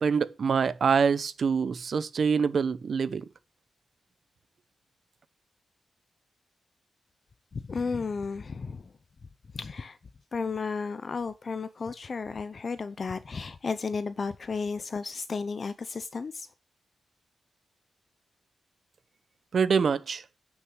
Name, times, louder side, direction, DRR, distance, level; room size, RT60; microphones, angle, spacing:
voice 1, 0.0-3.3 19.5-20.2, right 6 dB, 55° right, 0.8 m, -25 dB
voice 2, 7.5-8.9 9.5-10.0 10.3-16.5, left 4 dB, 40° left, 0.5 m, -33 dB
9.4 x 6.3 x 6.3 m
wide cardioid pair, 135°, 0 cm